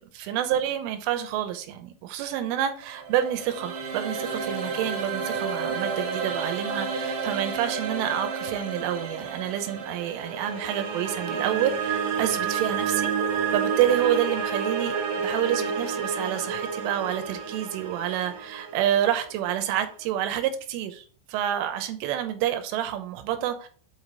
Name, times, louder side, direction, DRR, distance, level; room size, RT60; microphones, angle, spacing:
voice 1, 0.2-23.7, right 11 dB, 85° right, 7 dB, 3.3 m, -28 dB
sound 1, 2.8-19.9, right 5 dB, 65° right, 2.5 m, -30 dB
8.0 x 5.0 x 4.0 m, 0.42 s
omnidirectional pair, 5.8 m